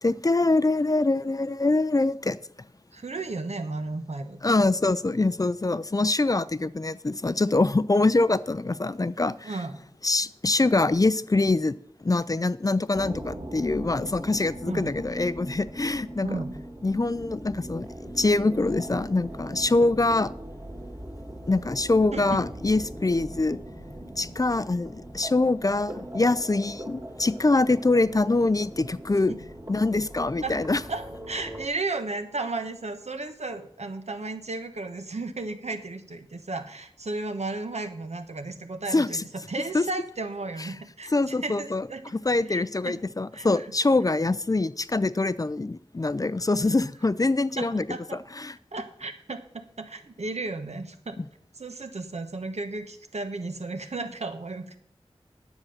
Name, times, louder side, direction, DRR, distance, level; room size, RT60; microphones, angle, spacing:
voice 1, 0.0-2.4 4.4-9.5 10.0-11.7 12.0-16.4 16.8-17.9 18.2-20.3 21.5-23.6 24.2-29.3 29.7-30.8 38.9-39.2 39.7-39.8 41.1-41.9 42.1-47.8 48.4-48.5, left 2 dB, 35° left, 16 dB, 0.4 m, -24 dB
voice 2, 2.9-4.7 9.4-9.8 14.7-14.9 16.2-16.5 22.1-22.4 29.3-29.4 30.4-30.6 30.9-39.2 39.5-42.1 42.5-43.0 43.3-43.7 47.6-48.2 48.7-51.2 51.5-54.8, right 3 dB, 80° right, 7 dB, 1.0 m, -34 dB
sound 1, 12.9-31.7, right 1 dB, 35° right, 2.2 m, -40 dB
9.8 x 7.3 x 6.5 m, 0.67 s
wide cardioid pair, 60°, 11 cm